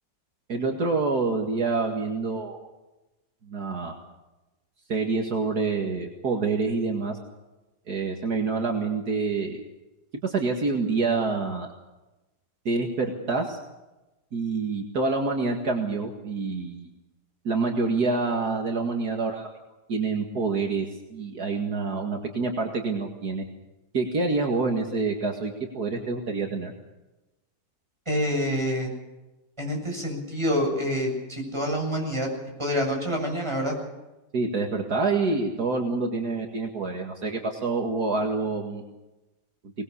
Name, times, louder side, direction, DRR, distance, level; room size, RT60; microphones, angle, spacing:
voice 1, 0.5-2.6 3.4-3.9 4.9-7.2 7.9-9.6 10.2-11.7 12.7-13.6 14.3-16.9 17.4-19.5 19.9-23.4 23.9-26.7 34.3-38.8, right 4 dB, 65° right, 2 dB, 2.5 m, -27 dB
voice 2, 28.1-28.9 29.6-32.3 32.6-33.7, equal, 15° right, 0 dB, 7.3 m, -27 dB
23.5 x 20.0 x 7.0 m, 1.1 s
omnidirectional pair, 1.8 m